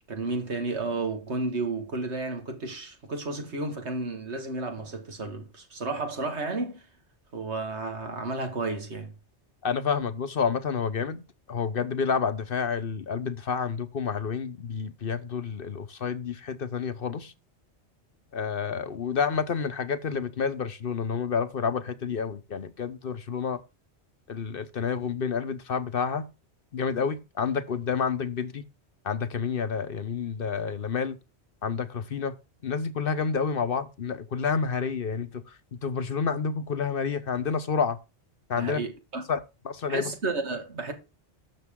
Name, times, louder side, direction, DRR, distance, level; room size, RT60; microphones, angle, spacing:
voice 1, 0.1-6.9 7.3-9.1 38.6-39.2 39.9-40.9, right 3 dB, 75° right, 2.2 m, -32 dB
voice 2, 9.6-11.2 11.5-17.3 18.3-23.6 24.3-26.2 26.7-28.6 29.0-31.2 31.6-32.4 32.6-35.4 35.7-38.0 38.5-38.8 39.3-39.4 39.6-40.1, left 6 dB, 55° left, 1.0 m, -29 dB
12.0 x 7.1 x 3.7 m
omnidirectional pair, 1.2 m